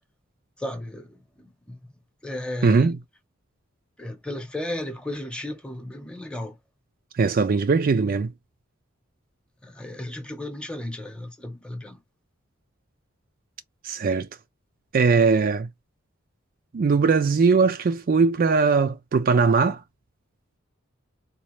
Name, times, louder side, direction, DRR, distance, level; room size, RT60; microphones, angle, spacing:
voice 1, 0.6-1.2 1.4-1.8 2.2-2.9 4.0-6.5 9.6-12.0, left 1 dB, 5° left, 0.9 m, -34 dB
voice 2, 2.6-3.0 7.1-8.3 13.8-14.3 14.9-15.7 16.7-19.8, right 4 dB, 45° right, 0.4 m, -20 dB
4.0 x 2.4 x 3.0 m
head